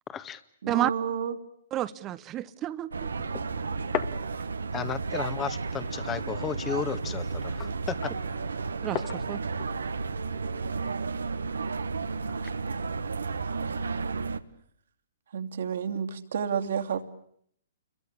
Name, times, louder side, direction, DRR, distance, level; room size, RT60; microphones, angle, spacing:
voice 1, 0.1-0.4 4.7-8.1, left 7 dB, 20° left, 12 dB, 1.7 m, -34 dB
voice 2, 0.6-1.3 15.3-17.0, right 7 dB, 70° right, 7 dB, 2.8 m, -30 dB
voice 3, 1.7-3.1 8.8-9.4, right 13 dB, 25° right, 14 dB, 1.0 m, -30 dB
sound 1, 2.9-14.4, right 4 dB, 85° right, 1.4 m, -32 dB
sound 2, 3.2-5.0 5.4-11.3, left 11 dB, 35° left, 1.9 m, -40 dB
29.5 x 22.5 x 8.6 m, 0.68 s
hypercardioid pair, 130°, 0 cm